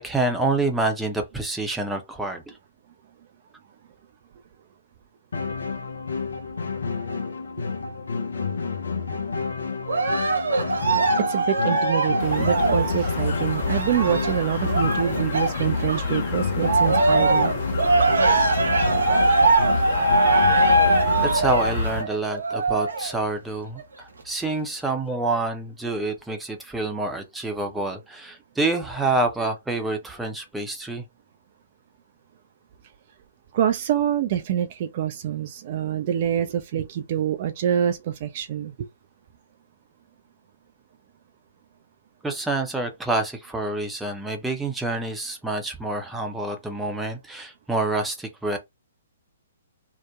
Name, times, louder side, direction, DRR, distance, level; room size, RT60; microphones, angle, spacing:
voice 1, 0.0-2.5 21.2-31.0 42.2-48.6, right 2 dB, 5° right, 0.6 m, -27 dB
sound 1, 5.3-21.3, left 4 dB, 70° left, 0.5 m, -30 dB
Cheering, 9.9-16.2 16.6-23.2 23.8-23.9, right 2 dB, 75° right, 1.0 m, -22 dB
voice 2, 11.2-17.5 33.5-38.9, right 10 dB, 45° right, 0.3 m, -26 dB
sound 2, 12.2-22.0, left 3 dB, 45° left, 0.8 m, -29 dB
2.8 x 2.1 x 2.3 m
figure-of-eight pair, 125°, 0 cm